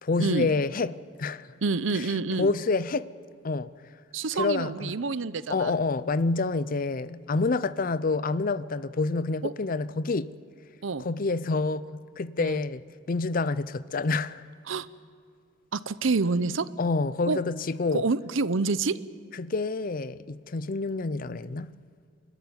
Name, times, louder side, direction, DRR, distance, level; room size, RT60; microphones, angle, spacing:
voice 1, 0.0-1.5 1.9-2.1 2.4-3.1 3.4-3.7 4.3-4.9 5.5-10.3 11.0-14.4 16.8-18.0 19.4-21.7, left 3 dB, 45° left, 0.6 m, -28 dB
voice 2, 1.6-2.5 4.1-5.7 9.4-9.5 10.8-11.0 12.4-12.6 14.7-14.9 15.7-16.7 17.3-17.4 17.9-19.0, right 4 dB, 80° right, 0.7 m, -27 dB
29.5 x 13.5 x 9.6 m
head